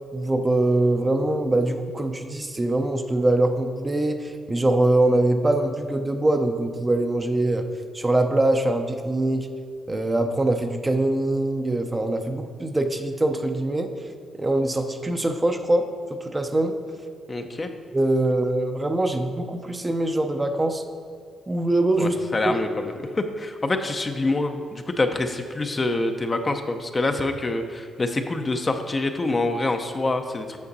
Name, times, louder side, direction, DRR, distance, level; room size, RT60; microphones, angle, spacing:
voice 1, 0.1-7.7 7.9-9.5 9.9-13.9 14.3-15.9 16.2-16.7 17.9-20.8 21.5-22.2 22.4-22.5, right 2 dB, 20° right, 6 dB, 0.6 m, -23 dB
voice 2, 17.3-17.7 22.0-30.6, left 2 dB, 25° left, 6 dB, 0.6 m, -26 dB
8.4 x 6.4 x 4.0 m, 2.2 s
cardioid pair, 90°, 0 cm